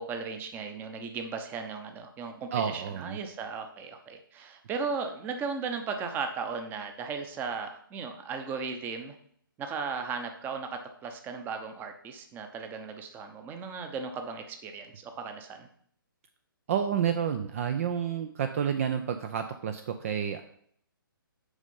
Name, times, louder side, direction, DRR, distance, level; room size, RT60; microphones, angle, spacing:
voice 1, 0.0-9.2 9.6-15.7, right 5 dB, 15° right, 6 dB, 0.8 m, -36 dB
voice 2, 2.5-3.2 16.7-20.4, right 8 dB, 40° right, 8 dB, 0.5 m, -30 dB
8.1 x 5.1 x 5.6 m, 0.64 s
figure-of-eight pair, 135°, 12 cm